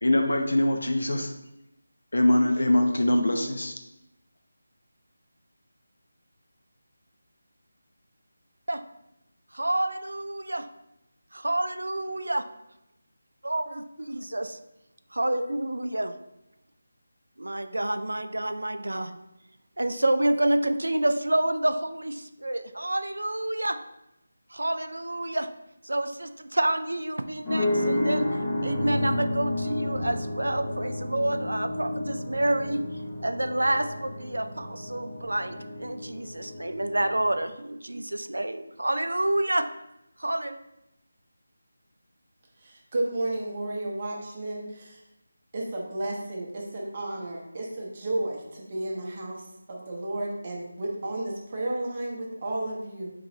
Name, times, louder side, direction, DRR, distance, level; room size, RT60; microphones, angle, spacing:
voice 1, 0.0-1.3 2.1-3.7, left 1 dB, 80° left, 4 dB, 0.6 m, -23 dB
voice 2, 9.5-10.7 11.3-12.5 13.4-13.8 14.1-14.6 15.1-16.2 17.4-19.2 19.8-23.8 24.5-25.5 25.8-32.8 33.2-39.7 40.2-40.6, right 1 dB, 90° right, 9 dB, 0.3 m, -28 dB
sound 1, 27.4-37.5, left 1 dB, 20° left, 0.7 m, -31 dB
voice 3, 42.6-45.0 45.5-53.1, right 1 dB, 35° right, -2 dB, 0.8 m, -32 dB
3.8 x 3.0 x 2.7 m, 0.88 s
figure-of-eight pair, 165°, 0 cm